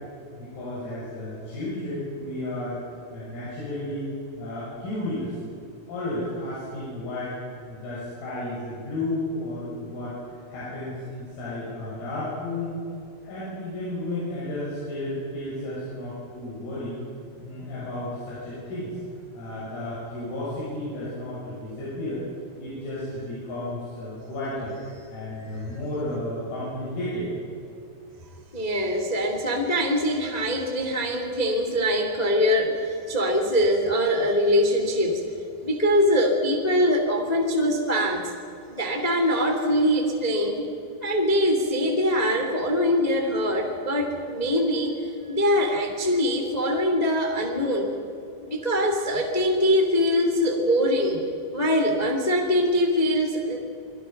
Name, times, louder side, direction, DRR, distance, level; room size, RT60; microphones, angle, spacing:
voice 1, 0.4-2.8 3.1-4.1 4.4-5.3 5.9-7.4 7.7-12.8 13.2-17.0 17.4-18.9 19.3-22.2 22.6-24.7 25.1-27.3, left 1 dB, 85° left, -8 dB, 9.8 m, -33 dB
voice 2, 28.5-35.2 35.6-38.3 38.7-40.7 41.0-44.9 45.3-47.9 48.4-51.2 51.5-53.6, equal, 35° left, 2 dB, 0.6 m, -23 dB
29.5 x 22.5 x 5.9 m, 2.7 s
omnidirectional pair, 5.9 m